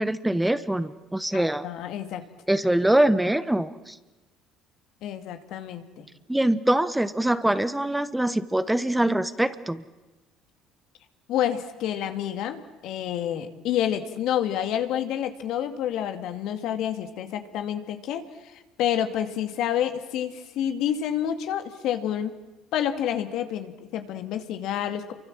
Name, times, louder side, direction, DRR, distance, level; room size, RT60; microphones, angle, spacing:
voice 1, 0.0-1.6 2.5-4.0 6.3-9.8, right 1 dB, 5° right, 13 dB, 1.3 m, -23 dB
voice 2, 1.3-2.2 5.0-6.1 11.3-22.3 22.7-25.1, left 10 dB, 70° left, 8 dB, 2.2 m, -29 dB
28.5 x 24.0 x 7.6 m, 1.1 s
supercardioid pair, 75°, 0 cm